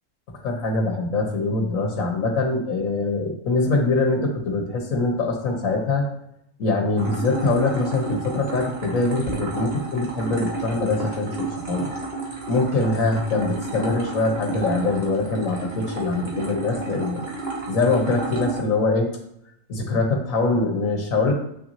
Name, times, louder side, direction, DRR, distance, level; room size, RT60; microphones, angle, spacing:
voice 1, 0.4-6.0 6.6-11.9 12.5-17.2 17.7-19.1 19.7-21.3, left 3 dB, 85° left, 2 dB, 1.4 m, -23 dB
sound 1, 7.0-18.6, right 3 dB, 50° right, 1.5 m, -32 dB
8.1 x 5.9 x 2.7 m, 0.77 s
omnidirectional pair, 1.4 m